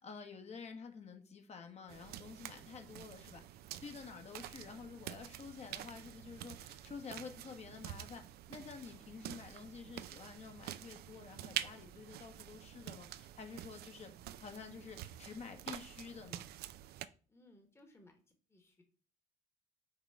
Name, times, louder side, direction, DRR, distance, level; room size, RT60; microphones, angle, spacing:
voice 1, 0.0-14.1 14.4-16.5, left 5 dB, 40° left, 1.1 m, -50 dB
sound 1, 1.9-17.1, right 13 dB, 70° right, 0.5 m, -48 dB
voice 2, 17.3-18.2 18.5-18.8, left 1 dB, 15° left, 1.2 m, -62 dB
5.9 x 3.7 x 4.5 m
cardioid pair, 110°, 17 cm